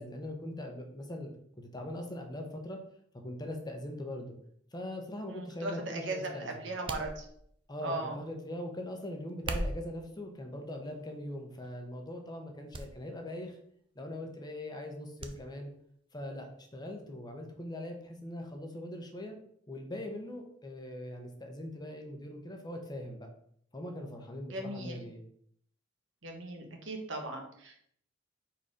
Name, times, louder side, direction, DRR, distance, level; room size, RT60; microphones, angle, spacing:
voice 1, 0.0-2.8 3.1-4.3 4.7-6.7 7.7-13.6 13.9-15.7 16.1-19.4 19.7-23.3 23.7-25.2, left 1 dB, 20° left, 3 dB, 1.0 m, -41 dB
voice 2, 5.3-7.3 7.8-8.2 24.5-25.0 26.2-27.8, right 2 dB, 85° right, 2 dB, 1.4 m, -38 dB
sound 1, 6.9-7.7 9.3-10.0 10.8-11.2 11.6-11.7 12.7-12.9 13.2-13.3 15.2-15.4 15.7-15.8, right 1 dB, 30° right, 0.6 m, -38 dB
4.4 x 4.3 x 5.0 m, 0.66 s
head